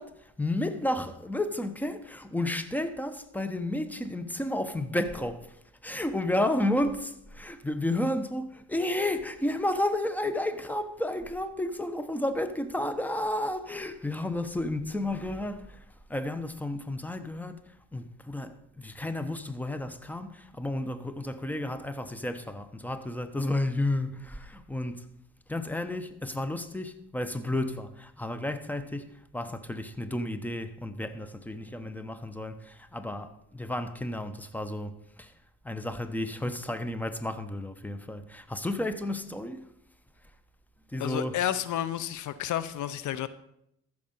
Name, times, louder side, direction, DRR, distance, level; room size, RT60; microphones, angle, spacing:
voice 1, 0.0-5.6 5.8-15.8 16.1-25.1 25.5-35.3 35.6-39.7 40.9-41.4, left 1 dB, 5° left, 1.0 m, -32 dB
voice 2, 41.0-43.3, left 11 dB, 75° left, 0.7 m, -31 dB
14.0 x 6.5 x 5.5 m
cardioid pair, 90°, 30 cm